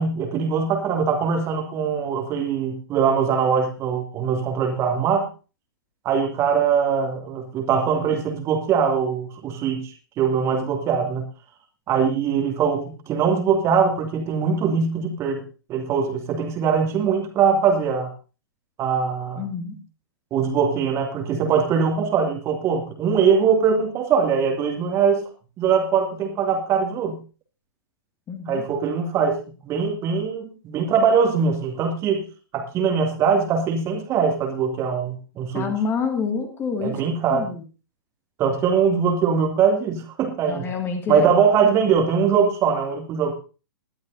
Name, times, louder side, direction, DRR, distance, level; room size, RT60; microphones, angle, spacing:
voice 1, 0.0-5.3 6.0-11.2 11.9-15.4 15.7-18.1 18.8-19.4 20.3-25.2 25.6-27.2 28.5-29.4 29.6-32.2 32.5-35.7 36.8-37.5 38.4-40.7 41.1-43.3, right 6 dB, 25° right, 4 dB, 2.3 m, -22 dB
voice 2, 19.4-19.7 28.3-28.6 35.5-37.0 37.3-37.6 40.4-41.3, left 5 dB, 20° left, 5 dB, 2.2 m, -27 dB
21.0 x 12.0 x 2.7 m, 0.33 s
figure-of-eight pair, 115°, 12 cm